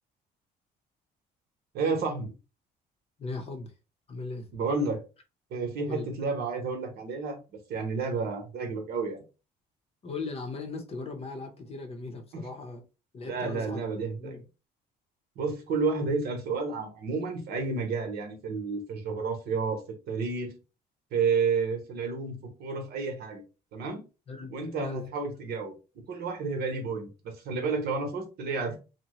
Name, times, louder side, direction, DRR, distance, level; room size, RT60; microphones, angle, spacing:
voice 1, 1.7-2.3 4.5-5.0 5.5-7.4 7.7-9.2 12.3-12.5 13.2-14.4 15.4-20.6 21.1-23.4 23.7-24.0 24.5-25.7 26.1-28.8, right 4 dB, 70° right, 0.9 m, -31 dB
voice 2, 3.2-3.7 4.1-4.5 5.8-6.1 10.0-12.8 13.1-13.8 14.2-14.4 24.3-25.0, left 3 dB, 35° left, 0.7 m, -38 dB
2.9 x 2.1 x 2.9 m
cardioid pair, 110°, 17 cm